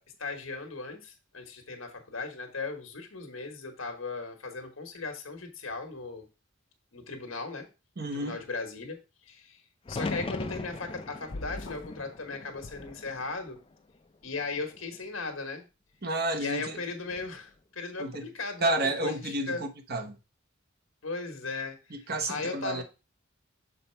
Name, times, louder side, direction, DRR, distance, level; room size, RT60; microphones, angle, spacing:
voice 1, 0.0-6.3 6.9-7.7 8.1-9.0 9.3-9.6 9.9-13.6 14.2-15.6 16.4-18.7 19.0-19.6 21.0-22.8, left 3 dB, 90° left, 1.3 m, -37 dB
voice 2, 8.0-8.4 16.0-16.8 18.0-18.3 18.6-20.2 21.9-22.8, right 2 dB, 50° right, 1.1 m, -31 dB
sound 1, 9.8-13.9 14.3-15.0 16.9-17.4, left 3 dB, 25° left, 0.4 m, -39 dB
sound 2, 11.3-12.0 12.6-13.5, left 2 dB, 65° left, 0.7 m, -43 dB
6.6 x 4.2 x 4.5 m
head